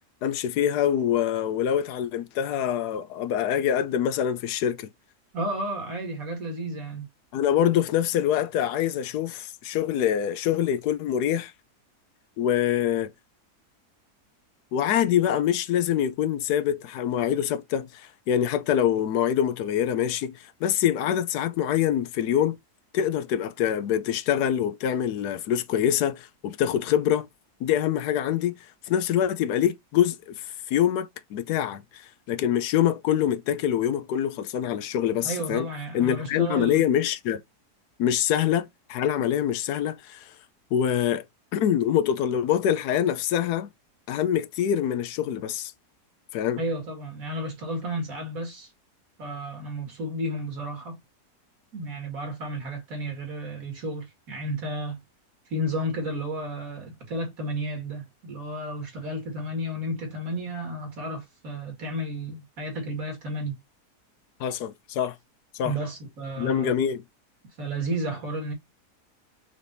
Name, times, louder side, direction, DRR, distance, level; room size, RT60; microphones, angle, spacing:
voice 1, 0.2-4.9 7.3-11.5 12.4-13.1 14.7-22.6 22.9-27.3 27.6-28.5 28.9-35.7 35.9-37.4 38.0-40.3 40.7-41.2 41.5-43.7 44.1-45.7 46.3-46.6 64.4-65.1 65.5-65.7 66.4-67.0, left 10 dB, 80° left, 1.1 m, -25 dB
voice 2, 5.3-7.1 35.2-36.9 46.6-48.7 49.2-51.0 51.7-55.0 55.5-63.6 65.6-66.7 67.6-68.5, right 1 dB, 60° right, 2.3 m, -32 dB
5.7 x 3.3 x 2.6 m
omnidirectional pair, 1.7 m